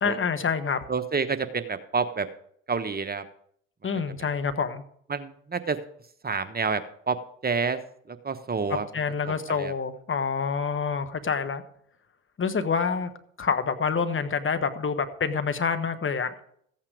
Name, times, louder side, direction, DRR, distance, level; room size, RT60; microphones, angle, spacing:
voice 1, 0.0-0.8 3.8-4.8 8.7-11.6 12.4-13.1 13.4-16.3, left 5 dB, 30° left, 10 dB, 1.3 m, -27 dB
voice 2, 0.9-2.3 2.7-3.2 5.1-5.8 6.2-7.2 7.4-7.8 8.1-8.9 9.3-9.7, right 5 dB, 25° right, 10 dB, 1.1 m, -28 dB
14.5 x 8.7 x 5.0 m, 0.66 s
hypercardioid pair, 55°, 38 cm